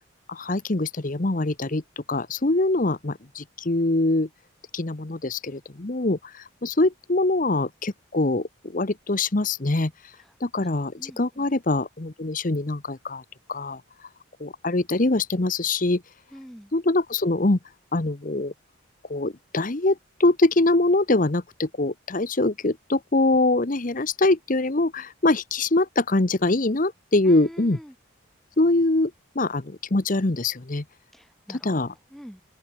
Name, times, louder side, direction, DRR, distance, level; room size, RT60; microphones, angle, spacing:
voice 1, 0.3-4.3 4.7-14.1 14.4-16.0 16.7-17.6 17.9-18.5 19.1-27.8 28.6-30.8 31.5-31.9, left 2 dB, 40° left, 1.0 m, -24 dB
voice 2, 11.0-11.5 16.3-16.7 27.3-27.9 31.1-31.8 32.1-32.4, equal, ahead, 7.9 m, -44 dB
open air
head